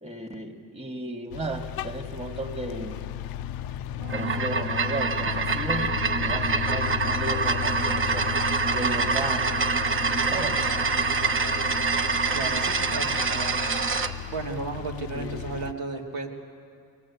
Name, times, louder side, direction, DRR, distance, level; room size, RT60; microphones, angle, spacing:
voice 1, 0.0-3.0 4.1-8.3 8.7-9.7 10.3-10.6 10.9-11.0 15.1-15.4, right 2 dB, 15° right, 1 dB, 2.1 m, -34 dB
sound 1, 1.3-15.7, left 13 dB, 70° left, 0.6 m, -34 dB
sound 2, 4.0-14.1, right 4 dB, 35° right, 1.2 m, -26 dB
voice 2, 12.3-13.6 14.3-16.3, right 3 dB, 85° right, -2 dB, 2.8 m, -34 dB
23.5 x 18.5 x 8.4 m, 2.4 s
cardioid pair, 100°, 36 cm